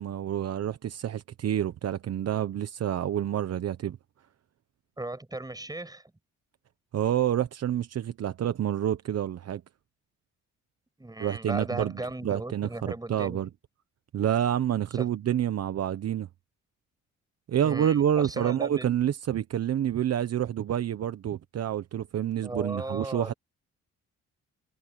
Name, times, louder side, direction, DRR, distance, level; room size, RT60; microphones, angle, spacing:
voice 1, 0.0-4.0 6.9-9.6 11.2-11.9 12.2-13.5 14.1-16.3 17.5-23.3, right 10 dB, 55° right, 1.1 m, -28 dB
voice 2, 5.0-6.0 11.0-13.4 14.9-15.1 17.6-18.9 22.4-23.4, right 2 dB, 15° right, 6.5 m, -36 dB
cardioid pair, 90°, 30 cm